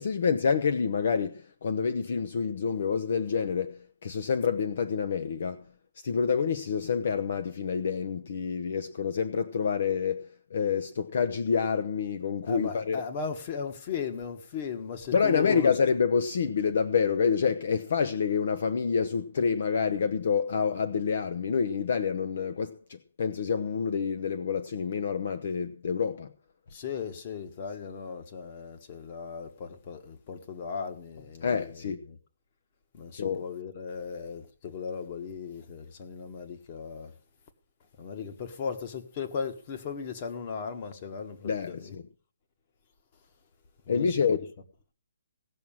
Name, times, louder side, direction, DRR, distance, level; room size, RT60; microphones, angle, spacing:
voice 1, 0.0-5.6 6.0-13.0 15.1-26.3 31.4-32.0 33.1-33.4 41.4-42.0 43.9-44.5, left 6 dB, 50° left, 1.0 m, -28 dB
voice 2, 12.5-15.7 26.7-32.2 32.9-37.1 38.0-41.9 43.9-44.2, left 6 dB, 30° left, 1.6 m, -37 dB
17.5 x 6.3 x 7.3 m
hypercardioid pair, 170°, 0 cm